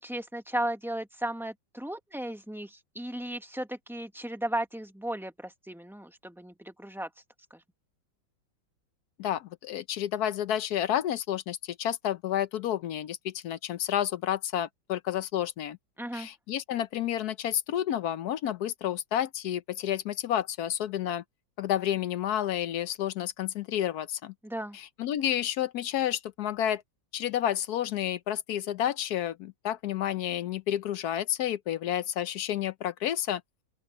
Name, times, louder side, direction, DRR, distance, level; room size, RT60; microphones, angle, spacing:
voice 1, 0.0-7.1 7.5-7.6 16.0-16.3 24.4-24.8, right 1 dB, ahead, 1.0 m, -35 dB
voice 2, 9.2-15.8 16.1-21.2 21.6-24.3 24.7-26.8 27.1-33.4, left 11 dB, 65° left, 1.0 m, -30 dB
open air
omnidirectional pair, 2.1 m